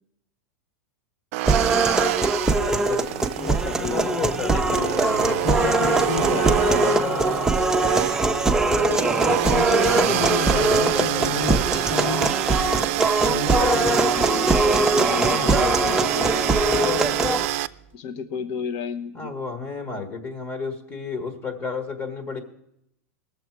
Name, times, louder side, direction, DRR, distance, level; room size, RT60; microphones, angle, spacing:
sound 1, 1.3-17.7, right 16 dB, 60° right, 0.4 m, -27 dB
sound 2, 1.5-17.5, right 2 dB, 5° right, 0.6 m, -22 dB
voice 1, 2.6-3.3 3.7-7.6 9.8-11.9 15.1-16.0 16.7-17.4 19.1-22.4, left 4 dB, 30° left, 6 dB, 1.4 m, -32 dB
voice 2, 3.4-4.1 4.5-5.0 5.2-7.1 9.3-12.3 13.2-16.6 17.9-19.3, left 6 dB, 55° left, 8 dB, 0.9 m, -31 dB
sound 3, 4.5-15.1 15.6-17.9, right 6 dB, 25° right, 1.0 m, -37 dB
19.0 x 7.2 x 4.6 m, 0.78 s
hypercardioid pair, 115°, 8 cm